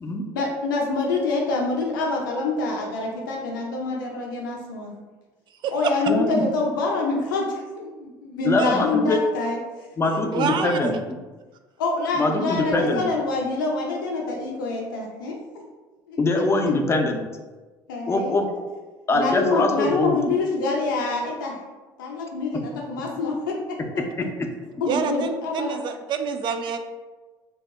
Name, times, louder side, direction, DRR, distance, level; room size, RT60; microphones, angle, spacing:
voice 1, 0.3-4.9 5.7-9.6 11.8-15.6 16.1-16.2 16.6-16.7 17.9-18.4 19.1-21.6 22.0-23.8 24.8-25.8, left 3 dB, 85° left, -1 dB, 0.5 m, -26 dB
voice 2, 6.1-6.5 8.4-9.2 10.0-11.2 12.2-13.0 16.2-17.2 18.1-18.5 19.1-20.2 24.0-24.3, left 2 dB, 25° left, 4 dB, 0.5 m, -23 dB
voice 3, 10.3-11.0 24.9-26.8, right 6 dB, 50° right, 7 dB, 0.4 m, -27 dB
2.8 x 2.0 x 3.4 m, 1.3 s
hypercardioid pair, 65°, 11 cm